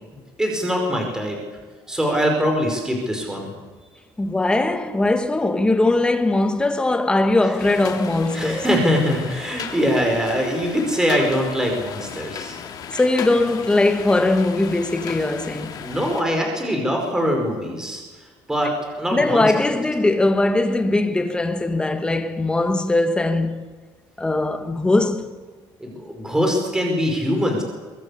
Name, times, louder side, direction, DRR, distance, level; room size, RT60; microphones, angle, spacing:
voice 1, 0.4-1.4 1.9-3.5 8.3-12.6 15.8-18.0 18.5-19.7 25.8-27.6, equal, 5° right, 5.1 m, -22 dB
voice 2, 4.2-8.6 12.9-15.8 19.1-23.7 24.2-25.3, left 2 dB, 10° left, 1.9 m, -20 dB
sound 1, 7.6-16.2, left 7 dB, 45° left, 3.2 m, -35 dB
24.0 x 23.0 x 8.5 m
cardioid pair, 150°, 9 cm